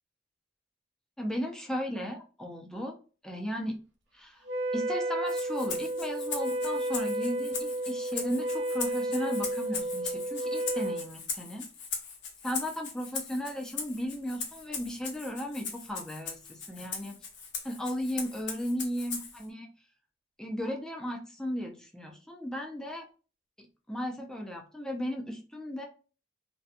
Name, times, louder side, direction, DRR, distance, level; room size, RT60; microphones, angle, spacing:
voice 1, 1.2-3.0 3.2-3.7 4.1-4.5 4.7-11.6 12.4-17.2 17.6-19.7 20.4-23.1 23.6-25.8, equal, 5° left, 1 dB, 0.4 m, -35 dB
Wind instrument woodwind instrument, 4.4-11.1, right 1 dB, 75° right, 0.6 m, -32 dB
Rattle (instrument), 5.3-19.5, left 5 dB, 80° left, 0.7 m, -40 dB
2.7 x 2.2 x 2.4 m, 0.36 s
head